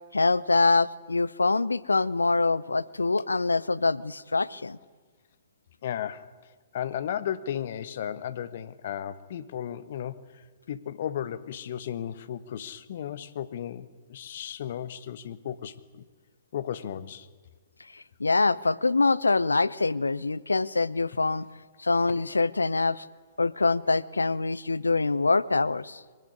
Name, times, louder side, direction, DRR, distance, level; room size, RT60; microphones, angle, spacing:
voice 1, 0.1-4.8 17.9-21.5 21.8-23.0 23.4-26.0, left 3 dB, 80° left, 20 dB, 0.8 m, -25 dB
voice 2, 5.8-6.3 6.7-16.0 16.5-17.3 22.1-22.2, left 10 dB, 55° left, 14 dB, 1.4 m, -35 dB
23.5 x 19.5 x 9.8 m, 1.4 s
figure-of-eight pair, 115°, 0 cm